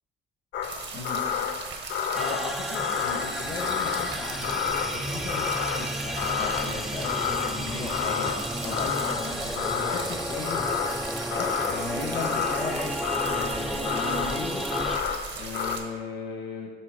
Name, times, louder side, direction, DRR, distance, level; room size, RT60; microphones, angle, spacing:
sound 1, 0.5-15.8, left 7 dB, 70° left, 0.5 m, -31 dB
sound 2, 0.6-15.8, right 4 dB, 60° right, 1.1 m, -38 dB
voice 1, 2.1-5.4 5.7-12.9 13.3-14.7 15.3-16.7, left 4 dB, 85° left, -3 dB, 1.3 m, -36 dB
sound 3, 2.1-15.0, equal, ahead, 0.3 m, -33 dB
7.9 x 3.2 x 5.1 m, 1.6 s
cardioid pair, 90°, 20 cm